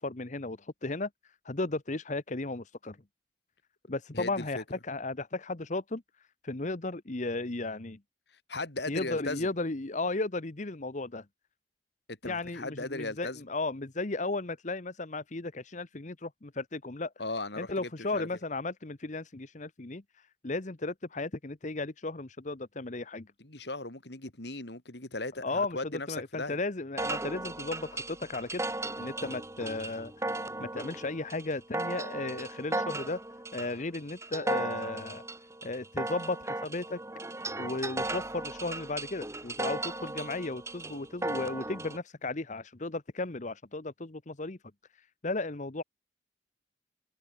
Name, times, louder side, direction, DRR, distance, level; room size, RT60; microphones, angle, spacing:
voice 1, 0.0-3.0 3.9-6.0 6.4-8.0 8.9-11.3 12.2-17.1 17.6-23.3 25.4-28.6 29.0-33.2 33.5-35.2 35.6-37.0 37.6-44.6 44.9-45.8, left 2 dB, 40° left, 1.1 m, -35 dB
voice 2, 4.1-4.6 8.5-9.5 12.1-13.4 17.2-18.3 23.4-26.6, left 2 dB, 65° left, 3.6 m, -37 dB
sound 1, 27.0-42.0, right 2 dB, 15° right, 4.4 m, -36 dB
head